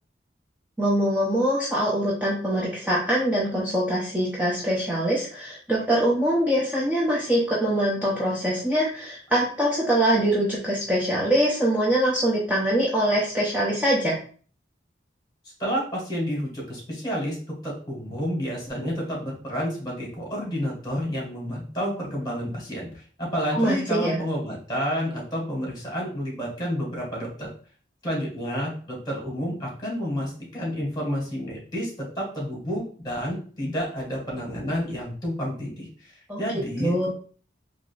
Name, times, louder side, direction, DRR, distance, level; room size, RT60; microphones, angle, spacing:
voice 1, 0.8-14.2 23.5-24.2 36.3-36.4 36.8-37.1, right 1 dB, 10° right, -6 dB, 0.6 m, -23 dB
voice 2, 15.6-17.4 17.6-27.5 28.0-36.1 36.4-37.1, equal, 25° left, -3 dB, 1.5 m, -30 dB
3.7 x 2.9 x 2.3 m, 0.42 s
head